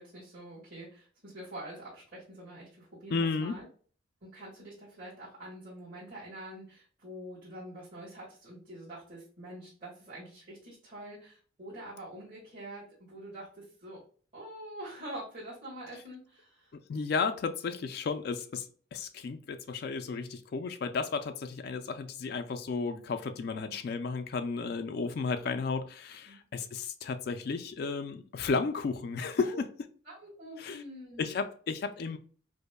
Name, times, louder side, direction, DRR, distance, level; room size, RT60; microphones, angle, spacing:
voice 1, 0.0-3.6 4.2-14.0 14.3-16.7 23.5-23.8 26.3-26.4 29.4-29.6 30.0-31.4, right 1 dB, 45° right, -10 dB, 1.5 m, -46 dB
voice 2, 3.1-3.6 15.9-16.0 16.9-29.7 30.6-30.8 31.2-32.2, left 4 dB, 55° left, 8 dB, 0.3 m, -33 dB
5.1 x 2.1 x 2.2 m, 0.42 s
head